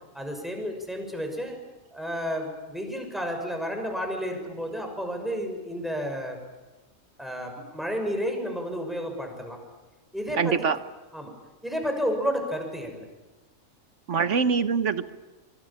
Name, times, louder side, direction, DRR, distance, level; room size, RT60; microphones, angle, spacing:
voice 1, 0.1-1.6 1.9-6.4 7.2-9.6 10.1-10.7 11.1-11.3 11.6-13.0, equal, ahead, 3 dB, 6.3 m, -31 dB
voice 2, 10.4-10.8 14.1-15.1, right 5 dB, 60° right, 12 dB, 1.4 m, -24 dB
27.0 x 24.0 x 8.8 m, 1.1 s
omnidirectional pair, 1.4 m